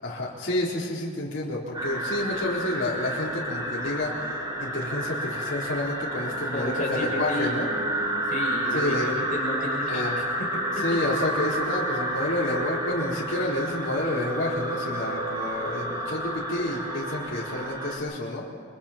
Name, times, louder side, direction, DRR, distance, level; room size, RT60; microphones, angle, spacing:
voice 1, 0.0-7.7 8.7-9.1 9.9-10.1 10.8-18.4, left 1 dB, 80° left, -6 dB, 4.0 m, -29 dB
sound 1, 1.7-18.0, right 1 dB, 20° right, 5.6 m, -30 dB
voice 2, 6.5-10.2 10.5-10.8, equal, 45° left, -3 dB, 6.1 m, -33 dB
30.0 x 25.5 x 4.4 m, 2.2 s
head